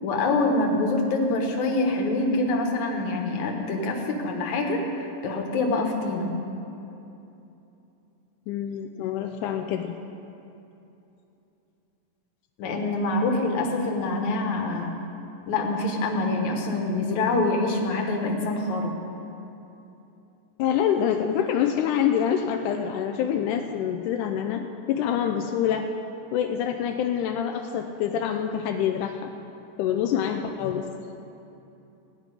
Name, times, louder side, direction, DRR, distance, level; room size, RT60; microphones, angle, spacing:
voice 1, 0.0-6.3 12.6-15.1 15.5-18.9, left 2 dB, 60° left, 2 dB, 2.5 m, -25 dB
voice 2, 8.5-10.0 20.6-25.9 26.3-29.3 29.8-30.9, left 9 dB, 80° left, 4 dB, 1.8 m, -26 dB
17.0 x 6.0 x 9.6 m, 2.9 s
omnidirectional pair, 4.1 m